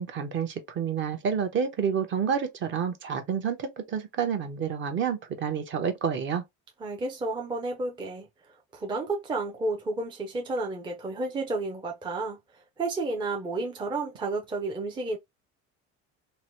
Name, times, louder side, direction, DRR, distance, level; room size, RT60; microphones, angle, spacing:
voice 1, 0.0-6.4, right 7 dB, 40° right, 0.8 m, -29 dB
voice 2, 6.8-15.2, right 2 dB, 15° right, 0.5 m, -32 dB
2.9 x 2.1 x 2.9 m
cardioid pair, 135°, 29 cm